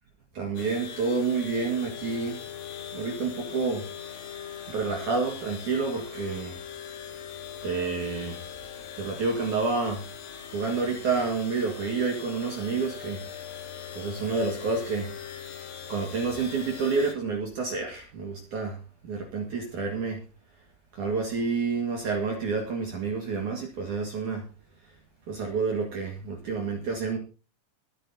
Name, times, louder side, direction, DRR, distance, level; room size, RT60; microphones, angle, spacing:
voice 1, 0.3-2.4 2.9-3.9 4.7-6.6 7.6-8.4 9.0-10.1 10.5-13.2 13.9-15.1 15.9-20.2 20.9-24.4 25.3-27.2, right 4 dB, 50° right, 1 dB, 2.6 m, -29 dB
sound 1, 0.6-17.2, left 8 dB, 65° left, 3.7 m, -41 dB
24.0 x 8.9 x 2.8 m, 0.34 s
omnidirectional pair, 5.6 m